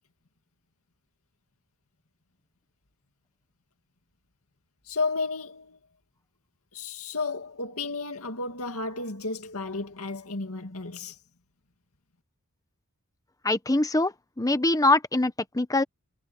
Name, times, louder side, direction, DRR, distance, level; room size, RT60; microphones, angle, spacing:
voice 1, 4.9-5.8 6.7-11.2, left 3 dB, 70° left, 2.4 m, -32 dB
voice 2, 13.4-15.8, left 2 dB, 15° left, 1.1 m, -24 dB
head